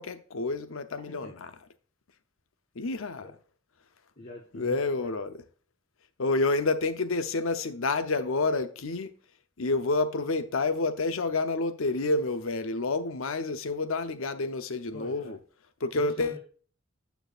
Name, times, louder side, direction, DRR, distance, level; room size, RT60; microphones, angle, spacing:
voice 1, 0.0-1.5 2.7-3.4 4.5-5.4 6.2-9.1 9.6-15.4 15.8-16.4, left 3 dB, 80° left, 0.7 m, -29 dB
voice 2, 4.2-5.2 14.9-15.3 15.9-16.4, left 1 dB, 45° left, 1.2 m, -43 dB
9.1 x 6.9 x 2.5 m
head